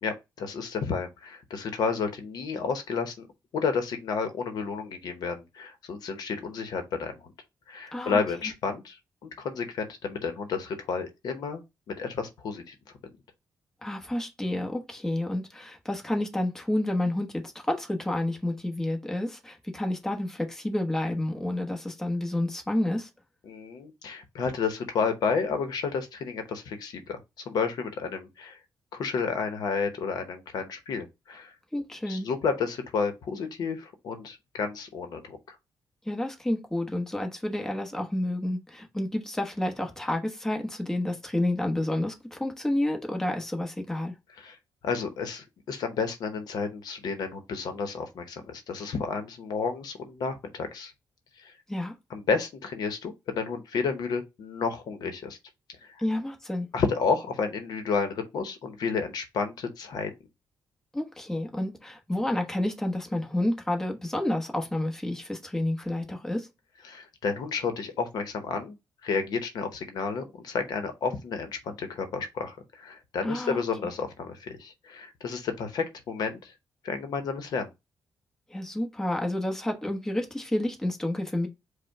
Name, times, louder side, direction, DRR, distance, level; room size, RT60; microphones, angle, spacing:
voice 1, 0.0-3.3 3.5-7.1 7.7-9.0 9.2-11.6 12.0-12.7 23.5-27.2 27.5-28.6 28.9-31.5 32.1-35.4 44.4-44.6 44.8-50.9 51.4-51.5 52.1-55.4 55.8-55.9 56.7-60.1 66.9-68.7 69.0-76.5 76.8-77.7, left 5 dB, 70° left, 0.8 m, -31 dB
voice 2, 13.8-23.1 31.7-32.3 36.0-44.1 51.7-51.9 56.0-56.7 60.9-66.5 73.2-73.9 78.5-81.5, left 1 dB, 5° left, 1.0 m, -30 dB
5.1 x 2.2 x 4.6 m
cardioid pair, 140°, 7 cm